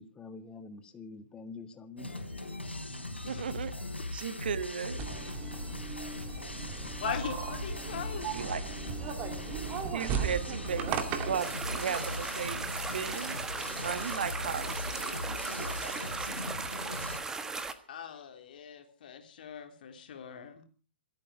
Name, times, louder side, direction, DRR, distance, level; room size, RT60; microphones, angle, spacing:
voice 1, 0.0-2.3, left 3 dB, 15° left, 8 dB, 1.6 m, -46 dB
sound 1, 2.0-17.2, left 2 dB, 90° left, 4.2 m, -40 dB
voice 2, 3.2-3.7 4.1-5.3 8.3-8.6 9.9-16.4, right 7 dB, 60° right, 14 dB, 1.3 m, -37 dB
sound 2, 5.0-11.5, right 7 dB, 30° right, 2.1 m, -37 dB
voice 3, 7.0-8.3 17.9-20.6, left 7 dB, 55° left, 5 dB, 3.2 m, -40 dB
sound 3, 11.4-17.7, right 3 dB, 10° right, 1.4 m, -37 dB
27.5 x 9.1 x 5.0 m, 0.40 s
figure-of-eight pair, 115°, 6 cm